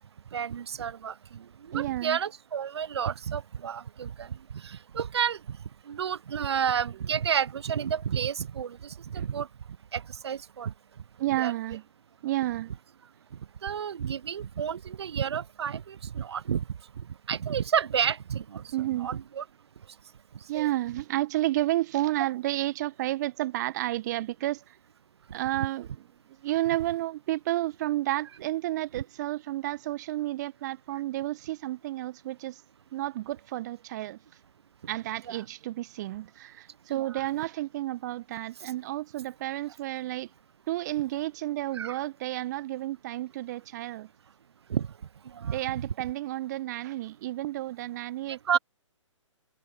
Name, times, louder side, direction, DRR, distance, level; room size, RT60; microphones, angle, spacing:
voice 1, 0.3-5.6 5.9-9.5 9.9-10.7 11.3-11.5 13.6-16.6 17.3-18.6 18.9-19.4 20.5-20.7 28.9-29.0 35.3-35.4 36.9-37.2 41.7-42.0 44.7-44.9 45.3-45.9 48.5-48.6, right 8 dB, 55° right, 1.1 m, -31 dB
voice 2, 1.7-2.2 9.1-9.3 11.2-11.8 12.2-12.7 18.7-19.1 20.5-24.6 25.3-25.9 26.4-32.6 32.9-34.2 34.9-40.3 40.7-44.1 45.5-48.6, right 16 dB, 35° right, 1.5 m, -31 dB
figure-of-eight pair, 130°, 16 cm